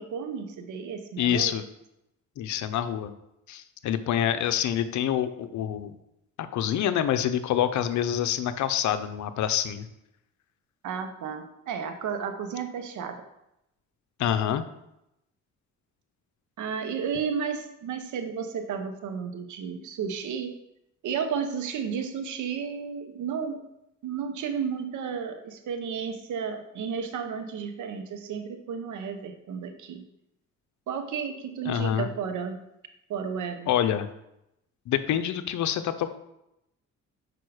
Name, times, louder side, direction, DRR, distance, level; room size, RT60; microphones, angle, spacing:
voice 1, 0.0-1.6 10.8-13.2 16.6-20.5 21.0-23.6 24.0-30.0 30.9-32.6 33.1-33.7, right 6 dB, 75° right, 7 dB, 0.9 m, -33 dB
voice 2, 1.2-1.6 2.4-3.1 3.5-5.9 6.4-9.9 14.2-14.6 31.7-32.1 33.7-34.1 34.9-36.2, left 10 dB, 70° left, 11 dB, 0.6 m, -26 dB
6.0 x 4.8 x 4.8 m, 0.85 s
cardioid pair, 90°, 30 cm